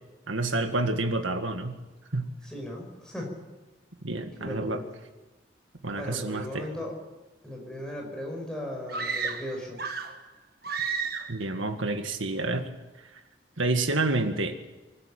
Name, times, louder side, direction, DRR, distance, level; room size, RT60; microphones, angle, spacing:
voice 1, 0.3-1.8 2.1-2.3 4.0-4.8 5.8-6.7 11.3-12.7 13.6-14.7, right 2 dB, 85° right, 7 dB, 1.9 m, -28 dB
voice 2, 2.4-3.3 4.4-4.8 5.9-7.0 7.4-9.8, left 1 dB, 5° left, -1 dB, 5.4 m, -37 dB
sound 1, 8.9-10.2 10.6-11.4, right 5 dB, 50° right, 1.5 m, -32 dB
25.0 x 12.5 x 8.8 m, 1.2 s
head